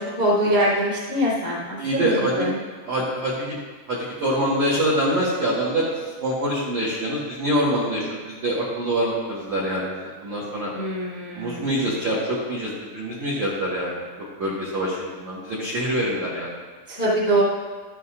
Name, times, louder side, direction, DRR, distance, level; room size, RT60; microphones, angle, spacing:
voice 1, 0.0-2.5 10.7-11.6 16.9-17.4, equal, 35° left, -7 dB, 0.8 m, -23 dB
voice 2, 1.8-2.5 2.8-3.5 3.9-5.9 6.2-10.0 10.2-10.7 11.3-14.0 14.4-16.5, equal, 65° right, -6 dB, 1.7 m, -25 dB
13.5 x 12.0 x 2.5 m, 1.4 s
omnidirectional pair, 5.7 m